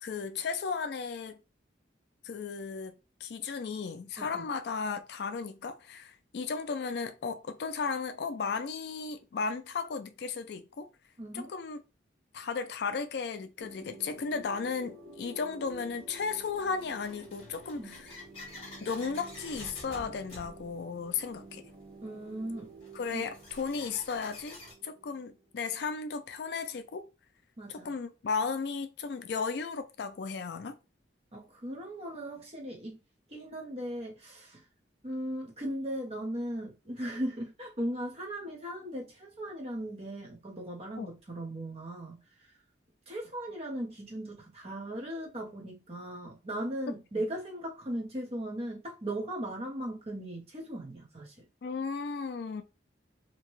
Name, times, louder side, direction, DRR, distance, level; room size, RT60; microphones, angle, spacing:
voice 1, 0.0-1.4 2.2-2.9 3.2-10.9 11.3-11.8 12.3-18.1 18.8-21.6 22.9-27.1 27.7-30.8 41.0-41.1 47.1-47.2 51.6-52.6, left 5 dB, 60° left, 0.4 m, -35 dB
voice 2, 11.2-11.5 17.8-18.0 22.0-22.7 23.1-23.2 27.6-27.9 31.3-33.0 33.3-34.6 35.0-42.2 43.1-51.5, right 1 dB, 35° right, 0.8 m, -38 dB
sound 1, 13.6-25.5, right 2 dB, 70° right, 0.8 m, -51 dB
sound 2, 14.4-14.5 15.3-24.7, left 2 dB, 30° left, 1.2 m, -50 dB
2.8 x 2.2 x 3.0 m
head